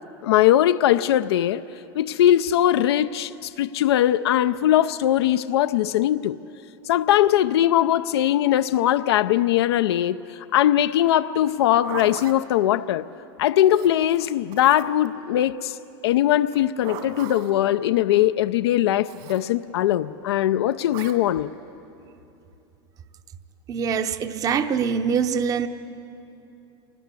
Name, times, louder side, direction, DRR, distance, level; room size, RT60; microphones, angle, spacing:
voice 1, 0.2-1.6 1.9-6.4 6.9-13.1 13.4-15.8 16.0-21.5, left 12 dB, 90° left, 0.5 m, -20 dB
Zipper (clothing), 11.5-12.4 13.7-15.1 16.5-17.6 19.0-19.4 20.9-21.2, right 7 dB, 60° right, 2.1 m, -38 dB
voice 2, 23.7-25.7, right 6 dB, 25° right, 0.8 m, -24 dB
26.0 x 19.0 x 8.3 m
supercardioid pair, 140°, 13 cm